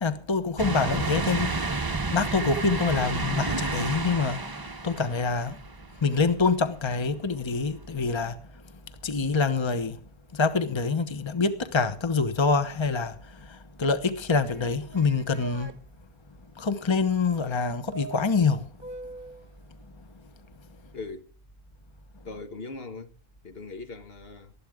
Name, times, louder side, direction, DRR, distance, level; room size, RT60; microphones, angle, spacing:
voice 1, 0.0-1.7 2.1-4.4 4.8-5.6 6.0-8.4 9.0-10.0 10.3-13.1 13.8-15.7 16.6-18.6, left 4 dB, 25° left, 1.1 m, -25 dB
sound 1, 0.6-6.1 6.6-6.7 8.1-8.2, right 3 dB, 20° right, 0.8 m, -31 dB
sound 2, 14.5-15.7 17.9-19.5, right 3 dB, 50° right, 1.0 m, -42 dB
voice 2, 20.9-21.3 22.2-23.1 23.4-24.5, left 3 dB, 65° left, 1.5 m, -40 dB
19.5 x 13.0 x 3.6 m
omnidirectional pair, 1.1 m